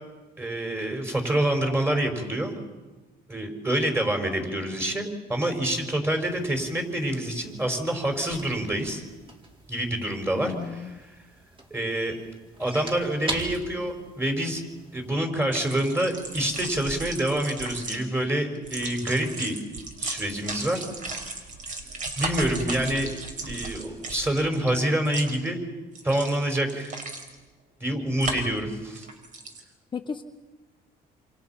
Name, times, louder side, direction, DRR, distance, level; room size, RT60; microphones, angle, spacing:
voice 1, 0.4-2.5 3.3-9.0 9.7-11.0 11.7-12.2 12.6-14.6 14.9-19.6 20.0-20.9 22.2-23.1 23.5-25.6 26.0-27.0 27.8-29.1, right 1 dB, 15° right, 4 dB, 5.2 m, -27 dB
sound 1, 6.2-15.2, right 2 dB, 30° right, 4.2 m, -42 dB
voice 2, 10.3-11.0 29.9-30.2, left 6 dB, 30° left, 4 dB, 1.1 m, -34 dB
sound 2, 15.4-18.0 18.5-24.7 25.0-25.5 25.9-27.3 28.2-28.6 28.9-29.6, right 3 dB, 50° right, 5.2 m, -35 dB
28.0 x 27.5 x 5.9 m, 1.2 s
cardioid pair, 110°, 17 cm